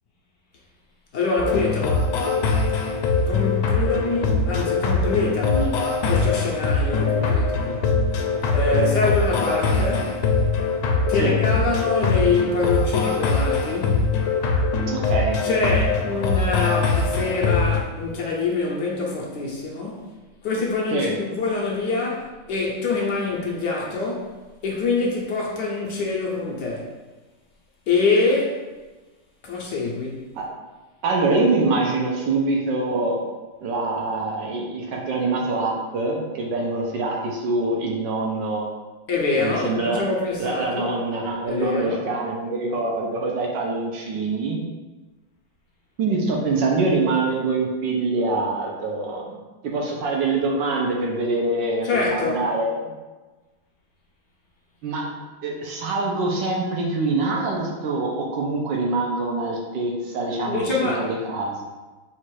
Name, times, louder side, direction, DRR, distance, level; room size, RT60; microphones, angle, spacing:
voice 1, 1.1-2.1 3.1-8.0 8.5-10.2 11.1-14.1 15.4-20.0 20.4-24.4 24.6-26.9 27.9-28.6 29.4-30.3 39.1-40.9 41.5-42.0 51.8-52.4 60.5-61.1, left 3 dB, 65° left, -3 dB, 1.2 m, -25 dB
sound 1, 1.4-17.8, left 4 dB, 85° left, 1.4 m, -22 dB
voice 2, 14.9-15.4 20.9-21.1 30.4-30.5 31.0-33.2 33.6-38.7 39.4-40.0 40.4-44.6 46.0-49.4 49.6-52.9 54.8-55.0 55.4-61.6, right 3 dB, 70° right, -1 dB, 1.3 m, -24 dB
4.3 x 2.5 x 4.7 m, 1.2 s
omnidirectional pair, 2.2 m